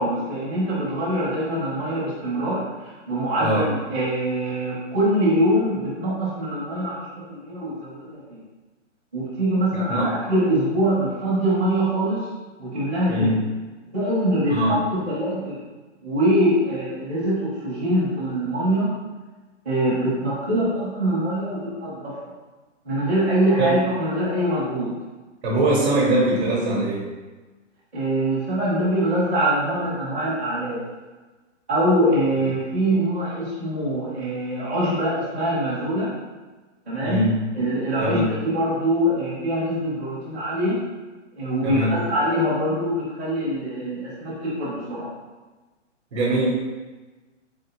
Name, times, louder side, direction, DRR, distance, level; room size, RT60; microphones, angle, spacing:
voice 1, 0.0-8.4 9.1-12.3 12.6-13.3 13.9-14.8 15.1-15.6 16.0-18.9 19.6-22.2 22.8-24.9 27.9-30.8 31.7-36.1 36.9-37.2 37.5-40.8 41.3-45.1, right 1 dB, 10° right, -14 dB, 0.5 m, -23 dB
voice 2, 13.1-13.4 14.5-14.8 23.6-23.8 25.4-27.1 37.0-37.4 38.0-38.3 41.6-42.0 46.1-46.5, right 1 dB, 45° right, -3 dB, 0.8 m, -22 dB
3.7 x 3.5 x 2.8 m, 1.2 s
hypercardioid pair, 165°, 38 cm